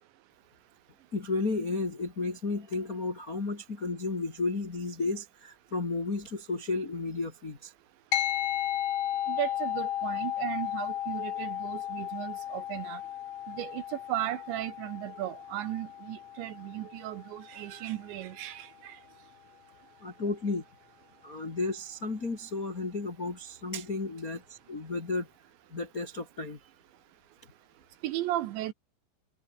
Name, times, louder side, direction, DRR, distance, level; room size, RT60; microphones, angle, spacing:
voice 1, 1.1-7.7 20.0-20.6 21.2-25.3 25.7-26.6, left 3 dB, 40° left, 1.3 m, -33 dB
sound 1, 8.1-17.8, left 12 dB, 75° left, 4.7 m, -34 dB
voice 2, 9.3-13.0 13.5-19.0 28.0-28.7, right 14 dB, 75° right, 3.0 m, -35 dB
omnidirectional pair, 5.9 m